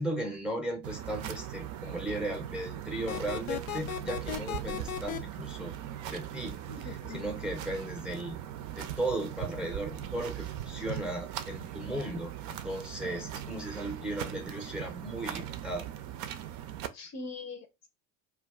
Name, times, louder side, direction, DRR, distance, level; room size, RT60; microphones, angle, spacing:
voice 1, 0.0-5.7 6.1-8.4 8.8-15.9, right 1 dB, ahead, 0.6 m, -36 dB
sound 1, 0.8-16.9, right 11 dB, 50° right, 0.5 m, -40 dB
sound 2, 3.1-5.2, left 11 dB, 80° left, 0.5 m, -35 dB
voice 2, 6.7-7.3 16.9-17.9, left 4 dB, 40° left, 0.7 m, -42 dB
2.3 x 2.2 x 3.4 m
hypercardioid pair, 80°, 41 cm